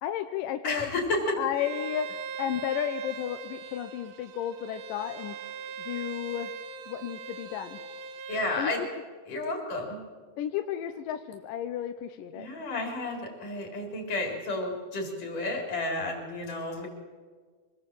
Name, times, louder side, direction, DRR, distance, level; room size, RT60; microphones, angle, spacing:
voice 1, 0.0-0.9 1.4-2.1 2.4-5.4 5.8-6.5 6.9-7.8 8.6-8.9 10.4-12.5, left 10 dB, 75° left, 7 dB, 2.2 m, -33 dB
voice 2, 0.6-1.4 8.3-8.8 9.3-10.0 12.3-16.9, left 2 dB, 55° left, 1 dB, 5.3 m, -31 dB
Bowed string instrument, 1.5-8.5, right 6 dB, 75° right, 2.7 m, -40 dB
24.5 x 20.0 x 7.6 m, 1.5 s
omnidirectional pair, 4.5 m